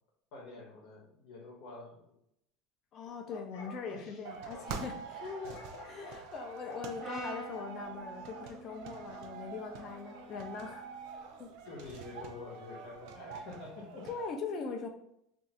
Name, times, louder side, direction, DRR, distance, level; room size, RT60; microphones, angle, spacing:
voice 1, 0.3-2.2 3.9-4.2 5.4-5.6 11.6-14.1, left 3 dB, 55° left, -2 dB, 1.0 m, -48 dB
voice 2, 2.9-10.9 11.4-11.5 14.1-14.9, left 5 dB, 35° left, 4 dB, 0.4 m, -41 dB
sound 1, 3.1-4.7 5.4-6.3 6.6-6.9 7.3-7.7 8.3-8.5 9.1-9.3, left 5 dB, 80° left, 0.6 m, -50 dB
sound 2, 4.2-14.3, right 5 dB, 60° right, 0.4 m, -46 dB
Brass instrument, 7.0-11.2, right 2 dB, 5° left, 1.0 m, -48 dB
2.5 x 2.3 x 4.1 m, 0.74 s
cardioid pair, 160°, 0 cm